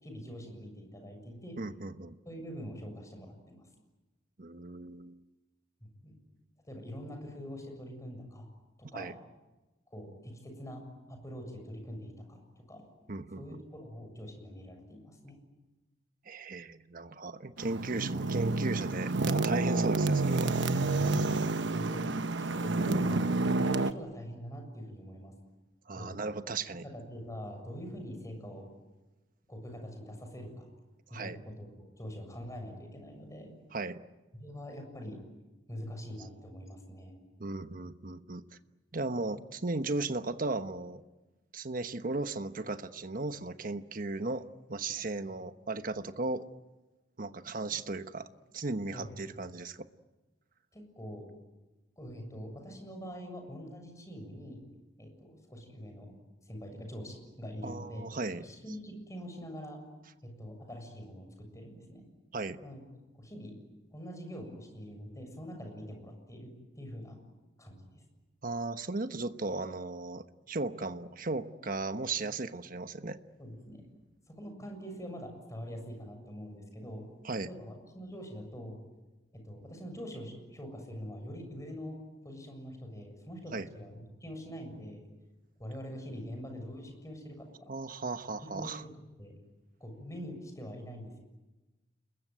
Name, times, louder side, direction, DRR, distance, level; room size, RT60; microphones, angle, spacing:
voice 1, 0.0-1.6 2.3-3.7 5.8-6.2 6.7-8.5 8.8-9.2 9.9-12.9 13.4-15.4 20.7-22.0 22.4-25.3 25.9-26.2 26.8-28.6 29.5-30.7 31.1-33.5 34.3-35.2 35.7-37.2 48.9-49.5 50.7-51.2 52.0-54.6 55.0-56.1 56.5-58.1 58.4-59.8 60.2-62.0 62.6-62.8 63.2-63.5 63.9-67.2 67.6-68.0 73.4-73.9 74.3-77.0 77.5-78.8 79.3-82.0 82.2-85.0 85.6-87.7 88.4-89.3 89.8-91.2, equal, 20° left, 4 dB, 7.2 m, -44 dB
voice 2, 1.6-2.2 4.4-5.2 8.9-9.1 13.1-13.6 16.2-20.5 25.9-26.8 31.1-31.4 33.7-34.0 37.4-38.4 38.9-41.0 41.5-44.4 44.7-46.4 47.2-48.3 48.5-49.9 57.6-58.4 62.3-62.6 68.4-73.2 77.2-77.5 83.5-83.7 87.7-88.8, right 3 dB, 50° right, 10 dB, 1.2 m, -36 dB
sound 1, 17.6-23.9, right 3 dB, 85° right, 1.0 m, -29 dB
30.0 x 21.5 x 9.3 m, 1.1 s
head